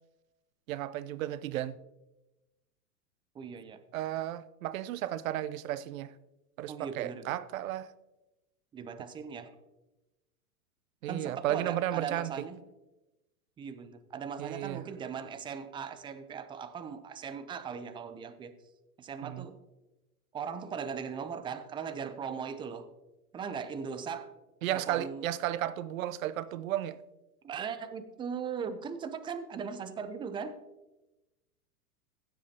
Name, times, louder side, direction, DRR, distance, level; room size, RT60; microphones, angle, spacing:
voice 1, 0.7-1.8 3.9-6.1 6.6-7.9 11.0-12.3 14.4-14.9 19.2-19.5 24.6-27.0, right 13 dB, 60° right, 0.7 m, -34 dB
voice 2, 3.3-3.8 6.7-7.3 8.7-9.5 11.1-12.6 13.6-18.5 19.0-19.5 20.3-22.9 23.3-24.3 24.7-25.3 27.4-30.5, right 6 dB, 10° right, 0.4 m, -39 dB
16.0 x 7.8 x 2.8 m
hypercardioid pair, 115°, 45 cm